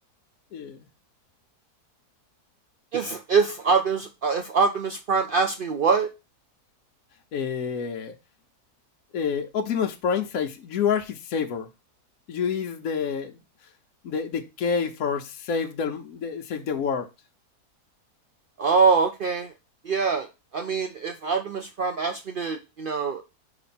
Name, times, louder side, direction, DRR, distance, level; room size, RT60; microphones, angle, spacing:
voice 1, 2.9-6.1 18.6-19.5 19.8-20.3 20.5-23.2, right 5 dB, 75° right, 0.5 m, -24 dB
voice 2, 7.3-8.1 9.1-11.7 12.3-13.4 14.0-17.1, left 6 dB, 65° left, 1.1 m, -28 dB
5.2 x 5.0 x 4.2 m
omnidirectional pair, 1.7 m